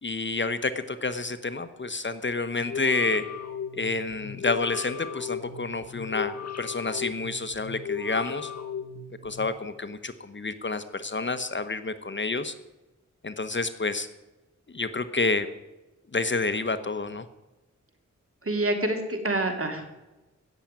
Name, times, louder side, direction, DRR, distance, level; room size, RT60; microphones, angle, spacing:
voice 1, 0.0-3.3 3.7-8.5 9.2-12.5 13.2-14.1 14.7-15.5 16.1-17.2, left 3 dB, 40° left, 11 dB, 1.1 m, -29 dB
sound 1, 2.6-9.5, left 7 dB, 55° left, 1.4 m, -36 dB
voice 2, 18.4-19.9, right 2 dB, 45° right, 4 dB, 3.3 m, -27 dB
16.5 x 7.3 x 9.3 m, 1.1 s
wide cardioid pair, 70°, 31 cm